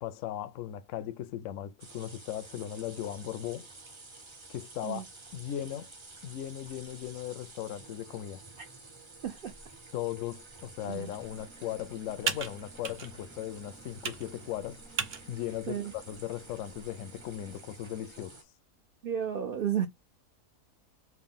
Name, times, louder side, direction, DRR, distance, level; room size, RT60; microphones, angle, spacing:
voice 1, 0.0-3.7 4.5-5.1 5.3-5.9 6.2-8.4 9.9-14.8 15.3-18.4, left 12 dB, 70° left, 0.8 m, -38 dB
sound 1, 1.8-18.4, right 3 dB, 30° right, 0.6 m, -51 dB
Computer keyboard, 10.8-17.6, right 5 dB, 45° right, 0.9 m, -40 dB
voice 2, 19.0-19.9, right 9 dB, 75° right, 0.5 m, -32 dB
4.6 x 2.1 x 3.6 m
omnidirectional pair, 1.7 m